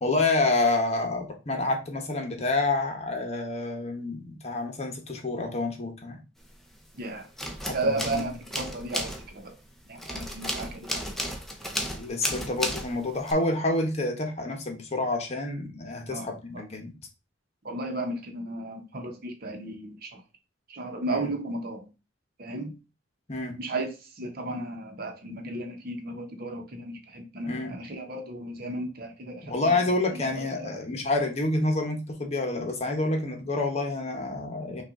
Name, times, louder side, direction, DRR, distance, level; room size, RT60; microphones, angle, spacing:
voice 1, 0.0-6.2 7.6-8.3 11.9-16.9 21.1-21.2 23.3-23.5 27.4-27.7 29.5-34.8, left 2 dB, 35° left, 3 dB, 1.0 m, -28 dB
sound 1, 6.5-7.0 7.2-13.3, equal, ahead, 0.7 m, -34 dB
voice 2, 6.9-7.3 7.7-9.5 9.9-11.2 16.1-16.3 17.6-20.2 20.7-21.9 22.4-22.7 23.6-30.8, right 2 dB, 55° right, 4 dB, 1.0 m, -34 dB
5.7 x 2.5 x 3.7 m, 0.30 s
head